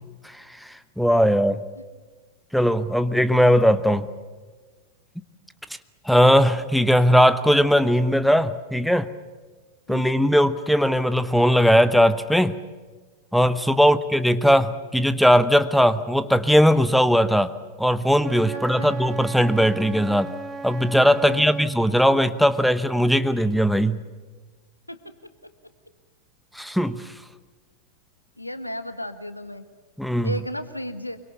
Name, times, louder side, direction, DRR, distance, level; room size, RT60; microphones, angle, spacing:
voice 1, 0.6-1.6 2.5-4.1 6.1-9.1 9.9-12.5 13.3-17.5 17.8-20.3 20.6-24.0 26.5-27.0 30.0-30.3, equal, ahead, 14 dB, 0.9 m, -19 dB
Wind instrument woodwind instrument, 18.2-21.8, right 4 dB, 15° right, 1.4 m, -35 dB
voice 2, 18.5-19.0 21.2-21.5 24.9-25.1 28.4-29.6 30.2-31.2, equal, 85° left, 11 dB, 1.5 m, -34 dB
25.0 x 23.0 x 7.0 m, 1.4 s
figure-of-eight pair, 90°, 0 cm